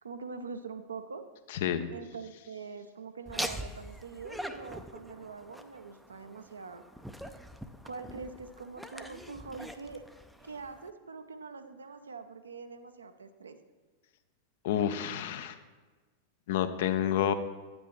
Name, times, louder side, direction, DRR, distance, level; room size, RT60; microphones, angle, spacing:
voice 1, 0.0-1.3 1.9-6.8 7.8-10.0 10.4-13.6, right 4 dB, 70° right, 9 dB, 0.6 m, -44 dB
voice 2, 1.5-1.9 14.6-15.6 16.5-17.3, left 9 dB, 55° left, 10 dB, 0.5 m, -29 dB
Laughter, 3.3-10.9, equal, ahead, 0.4 m, -43 dB
9.0 x 7.9 x 3.1 m, 1.3 s
figure-of-eight pair, 90°, 0 cm